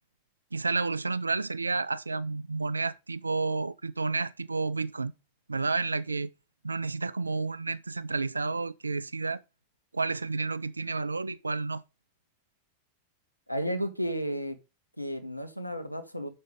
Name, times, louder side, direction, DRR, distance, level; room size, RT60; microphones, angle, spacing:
voice 1, 0.5-5.1 5.5-6.3 6.6-9.4 9.9-11.8, right 3 dB, 80° right, 0.3 m, -30 dB
voice 2, 13.5-14.6 15.0-16.3, equal, 90° left, 0.9 m, -32 dB
6.4 x 5.5 x 5.0 m
figure-of-eight pair, 90°, 0 cm